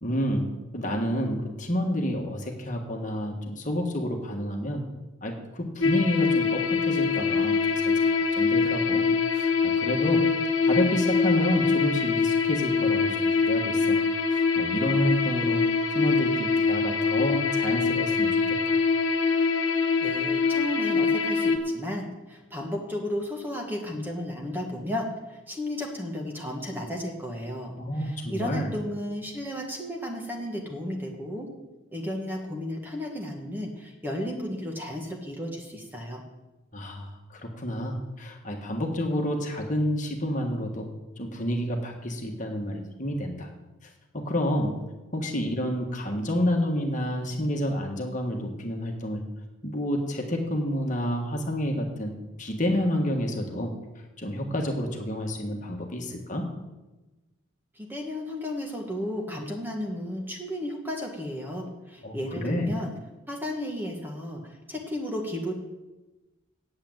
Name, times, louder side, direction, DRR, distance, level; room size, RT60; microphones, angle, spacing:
voice 1, 0.0-4.8 5.2-8.0 8.3-10.3 10.6-14.0 14.3-15.6 15.9-18.8 27.8-28.7 36.7-40.9 41.2-43.5 43.8-44.8 45.1-49.2 49.6-53.7 54.2-56.5 62.0-62.8, equal, 35° left, 2 dB, 1.6 m, -29 dB
sound 1, 5.8-21.6, left 5 dB, 65° left, 1.4 m, -24 dB
voice 2, 20.0-27.7 28.0-31.5 31.9-36.2 57.7-62.9 63.3-65.5, left 1 dB, 10° right, 0 dB, 1.6 m, -34 dB
8.8 x 7.9 x 8.9 m, 1.1 s
head